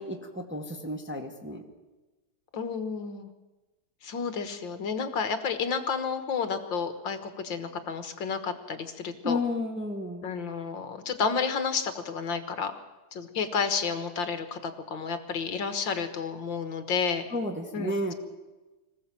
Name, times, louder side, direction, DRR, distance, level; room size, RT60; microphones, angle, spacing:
voice 1, 0.0-1.6 9.2-10.2 17.3-18.1, left 1 dB, 5° right, 1 dB, 1.5 m, -32 dB
voice 2, 2.5-3.3 4.0-9.4 10.2-12.7 13.1-17.3 17.7-17.9, left 5 dB, 65° left, 9 dB, 2.0 m, -31 dB
25.5 x 15.5 x 7.6 m, 1.2 s
omnidirectional pair, 2.3 m